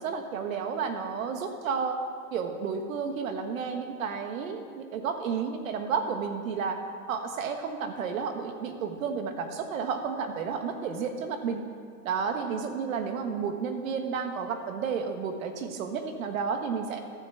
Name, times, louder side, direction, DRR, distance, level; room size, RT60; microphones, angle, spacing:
voice 1, 0.0-2.0 2.3-6.8 7.1-11.6 12.0-17.0, right 6 dB, 90° right, 6 dB, 1.5 m, -31 dB
13.5 x 6.0 x 7.3 m, 2.1 s
supercardioid pair, 130°, 40 cm